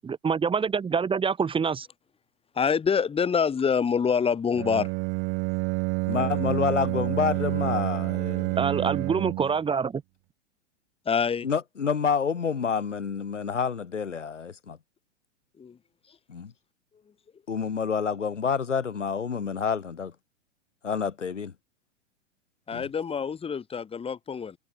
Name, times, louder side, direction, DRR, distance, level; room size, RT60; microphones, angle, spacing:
voice 1, 0.0-1.9 8.6-10.0, right 6 dB, 15° right, 3.0 m, -26 dB
voice 2, 2.5-4.9 11.0-11.5 15.6-15.8 22.7-24.6, left 6 dB, 15° left, 5.2 m, -26 dB
Bowed string instrument, 4.5-9.6, right 29 dB, 30° right, 0.9 m, -28 dB
voice 3, 6.1-8.6 11.4-14.8 16.3-16.5 17.5-20.1 20.8-21.5 22.7-22.8, left 6 dB, 75° left, 2.3 m, -28 dB
figure-of-eight pair, 105°, 37 cm